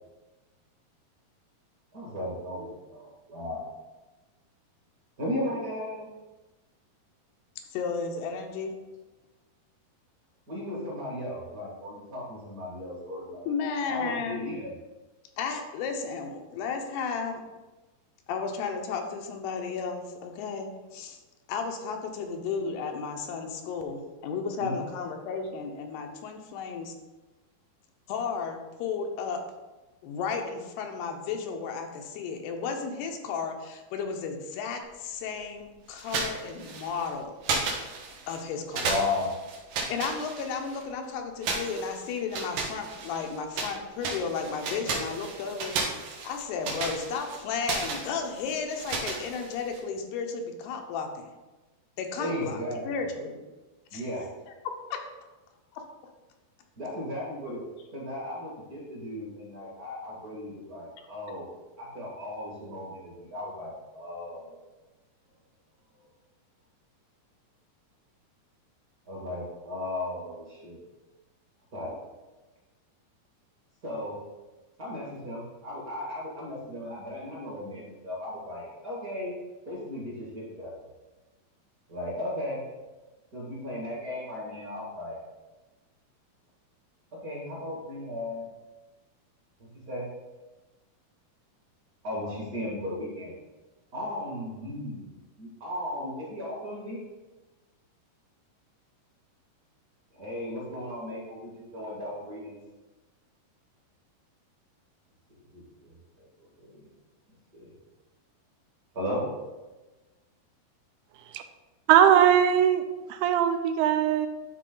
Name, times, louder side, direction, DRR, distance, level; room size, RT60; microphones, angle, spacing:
voice 1, 1.9-3.7 5.2-6.1 10.5-13.5 13.9-14.7 24.6-24.8 38.8-39.3 52.2-53.1 53.9-54.3 56.8-57.6 57.9-61.5 61.8-64.6 69.0-70.8 71.7-72.0 73.8-74.2 74.8-79.4 79.6-80.8 81.9-82.6 83.3-85.2 87.2-88.5 89.9-90.1 92.0-93.3 93.9-95.1 95.4-97.0 100.1-102.6 105.3-106.0 106.6-106.8 107.5-107.7 108.9-109.2, left 1 dB, 35° right, -6 dB, 1.6 m, -35 dB
voice 2, 7.7-8.8 13.5-14.5 15.4-17.4 18.3-21.2 21.5-26.9 28.1-29.4 30.0-37.4 38.3-38.9 39.9-51.3 52.0-53.4 53.9-54.0 54.9-55.0 55.7-55.8 61.3-61.4, left 5 dB, 85° left, 4 dB, 2.9 m, -33 dB
sound 1, 36.0-37.1 37.4-38.4 38.7-40.8 41.4-43.7 44.0-49.8, right 4 dB, 70° right, 2.6 m, -34 dB
voice 3, 111.9-112.8 113.1-114.3, right 10 dB, 85° right, 8 dB, 2.5 m, -20 dB
12.0 x 4.2 x 3.8 m, 1.2 s
omnidirectional pair, 4.6 m